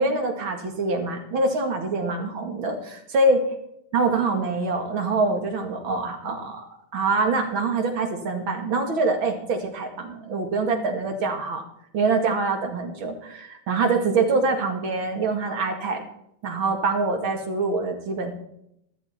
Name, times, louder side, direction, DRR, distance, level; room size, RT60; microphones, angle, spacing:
voice 1, 0.0-3.4 3.9-6.7 6.9-11.6 11.9-16.0 16.4-18.3, right 3 dB, 75° right, 4 dB, 2.8 m, -24 dB
13.5 x 13.5 x 4.4 m, 0.75 s
omnidirectional pair, 2.2 m